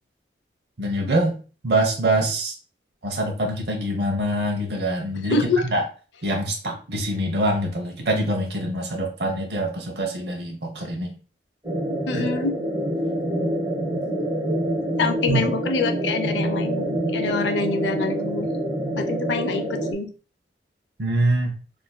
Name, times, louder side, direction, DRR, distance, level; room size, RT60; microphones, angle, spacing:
voice 1, 0.8-1.3 1.6-2.5 3.0-5.4 5.7-5.8 6.2-11.1 12.1-12.3 15.3-15.4 21.0-21.5, right 1 dB, 70° right, 1 dB, 0.6 m, -24 dB
voice 2, 5.2-5.6 12.1-12.5 15.0-18.5 19.0-20.1, left 4 dB, 85° left, 7 dB, 0.5 m, -26 dB
sound 1, 11.6-19.9, right 1 dB, 15° right, 0.8 m, -26 dB
3.8 x 2.5 x 2.2 m, 0.36 s
head